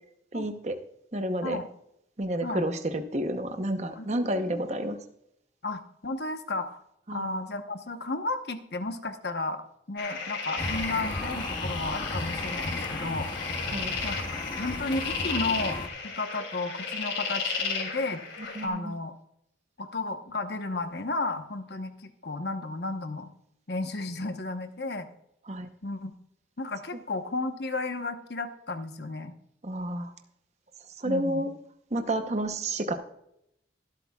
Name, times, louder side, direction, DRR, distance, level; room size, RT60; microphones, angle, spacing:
voice 1, 0.3-0.8 1.1-1.6 2.2-5.0 7.1-7.3 13.7-13.9 18.5-18.9 25.5-25.7 29.6-30.1 31.0-31.5 31.9-32.9, right 1 dB, 35° right, 6 dB, 0.8 m, -30 dB
voice 2, 5.6-6.8 7.1-9.6 9.9-13.3 14.0-14.2 14.6-18.2 18.6-19.1 19.8-23.3 23.7-25.1 25.8-26.1 26.6-29.3 31.0-31.5, left 2 dB, 60° left, 7 dB, 1.0 m, -33 dB
sound 1, 10.0-18.7, left 5 dB, 80° left, 2.7 m, -34 dB
sound 2, 10.6-15.9, left 1 dB, 25° left, 0.8 m, -35 dB
23.5 x 8.1 x 2.3 m, 0.77 s
head